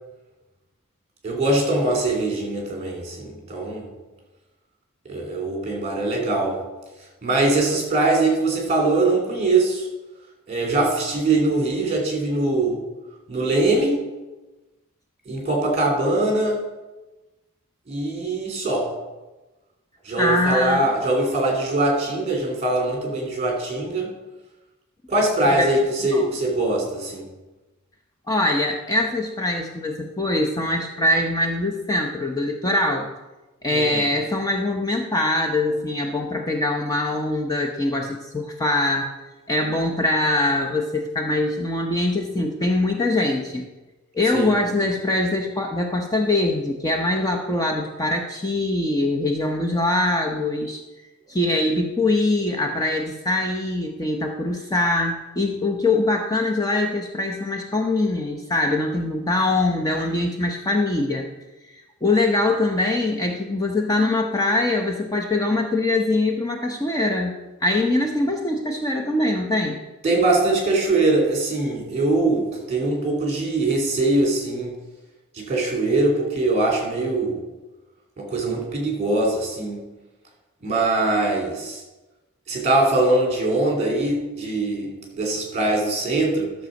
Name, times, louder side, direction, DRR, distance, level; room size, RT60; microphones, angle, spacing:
voice 1, 1.2-3.9 5.1-6.6 7.2-9.9 10.5-12.8 13.3-14.0 15.3-16.7 17.9-18.9 20.0-24.1 25.1-27.3 33.7-34.0 44.3-44.5 70.0-74.7 75.3-77.4 78.2-79.9 80.6-81.8 82.5-86.5, right 2 dB, 30° right, 0 dB, 3.0 m, -22 dB
voice 2, 20.2-20.9 25.4-25.7 26.1-26.4 28.3-33.1 33.6-39.1 39.5-43.7 44.1-50.8 51.3-61.3 61.6-67.3 67.6-69.8, left 2 dB, 15° left, 2 dB, 0.7 m, -23 dB
12.0 x 6.8 x 5.2 m, 1.1 s
head